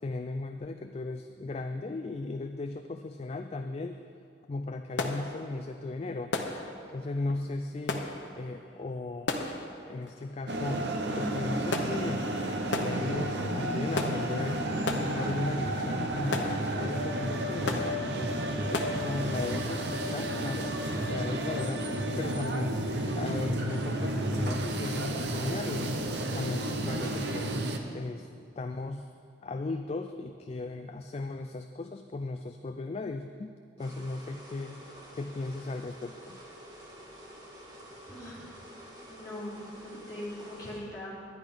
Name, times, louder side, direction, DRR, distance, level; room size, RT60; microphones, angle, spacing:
voice 1, 0.0-4.0 4.5-6.3 6.9-8.1 8.4-9.3 9.9-10.9 11.1-12.2 12.7-14.7 15.0-18.3 18.7-20.8 21.1-21.9 22.2-22.8 23.2-26.0 26.3-27.5 27.9-28.3 28.6-29.1 29.4-34.8 35.1-36.4, left 2 dB, 35° left, 7 dB, 0.3 m, -36 dB
sound 1, 3.9-4.1 4.4-19.0, left 2 dB, 70° left, 0.9 m, -38 dB
sound 2, 10.5-27.8, right 1 dB, 60° right, 0.9 m, -32 dB
sound 3, 33.8-40.8, equal, 20° right, 1.8 m, -49 dB
voice 2, 38.1-38.4 39.1-41.3, left 1 dB, 20° left, -9 dB, 3.1 m, -41 dB
10.5 x 10.5 x 5.1 m, 2.4 s
head